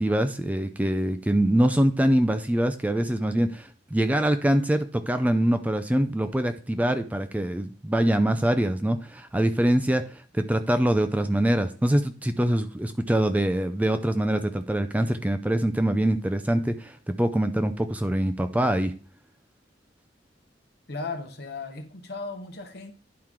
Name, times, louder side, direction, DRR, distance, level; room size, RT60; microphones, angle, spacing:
voice 1, 0.0-18.9, right 1 dB, 10° right, 0.3 m, -24 dB
voice 2, 20.9-22.9, left 3 dB, 60° left, 1.1 m, -36 dB
10.5 x 4.5 x 3.6 m
head